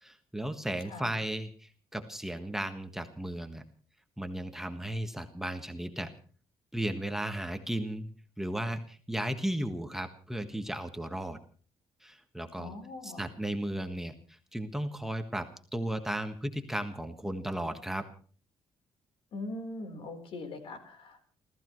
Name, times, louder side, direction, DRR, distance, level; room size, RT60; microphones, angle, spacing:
voice 1, 0.0-3.6 4.2-6.1 6.7-8.1 8.4-11.4 12.0-12.8 13.0-18.1, right 1 dB, 5° right, 6 dB, 1.5 m, -35 dB
voice 2, 12.6-13.3 19.3-21.2, left 2 dB, 70° left, 7 dB, 4.2 m, -41 dB
30.0 x 15.0 x 3.2 m, 0.43 s
cardioid pair, 115°, 10 cm